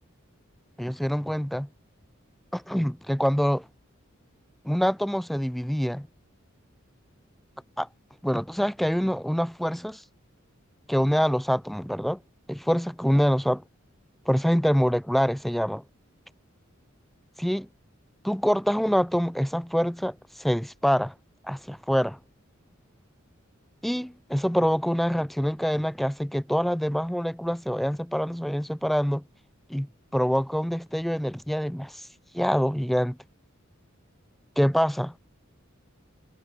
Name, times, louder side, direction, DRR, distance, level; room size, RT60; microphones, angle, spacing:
voice 1, 0.8-1.7 2.5-3.7 4.6-6.1 7.8-7.9 8.2-10.0 10.9-12.2 12.5-13.6 14.3-15.8 17.4-17.7 18.2-21.1 21.4-22.2 23.8-29.2 29.7-32.1 32.3-33.2 34.6-35.1, equal, ahead, 0.3 m, -25 dB
head